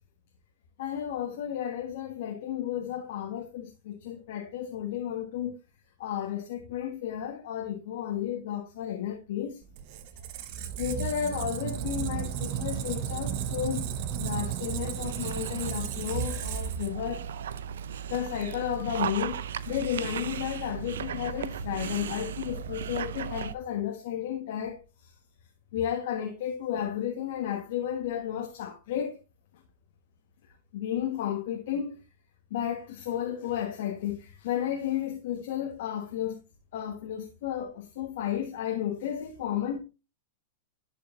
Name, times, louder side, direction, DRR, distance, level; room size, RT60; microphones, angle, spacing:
voice 1, 0.8-5.6 6.0-9.6 10.8-13.8 14.2-17.2 18.1-25.1 25.7-29.2 30.7-32.0 32.5-36.4 36.7-39.8, left 10 dB, 65° left, 1.5 m, -33 dB
Squeak, 9.6-17.4, right 9 dB, 55° right, 1.0 m, -34 dB
Dog, 15.0-23.5, right 8 dB, 80° right, 0.5 m, -36 dB
11.0 x 5.1 x 2.6 m
hypercardioid pair, 115°, 0 cm